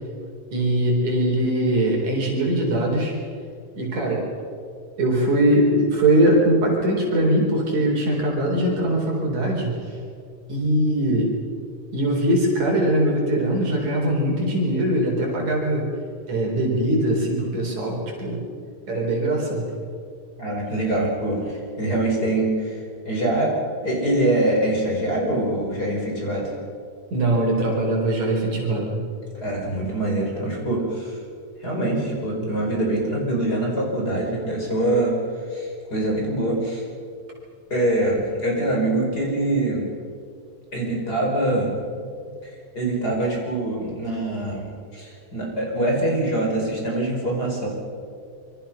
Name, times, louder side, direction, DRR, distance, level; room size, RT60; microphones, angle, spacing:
voice 1, 0.5-3.1 3.8-4.3 5.0-10.0 10.5-11.4 11.9-15.9 16.3-18.4 18.9-19.6 27.1-29.0, right 1 dB, 60° right, -1 dB, 5.4 m, -21 dB
voice 2, 20.4-22.8 23.1-23.5 23.8-26.5 29.3-31.2 31.6-35.2 35.5-36.8 37.7-39.9 40.7-41.7 42.4-47.7, right 1 dB, 25° left, -1 dB, 5.8 m, -24 dB
27.0 x 24.5 x 5.8 m, 2.3 s
omnidirectional pair, 3.8 m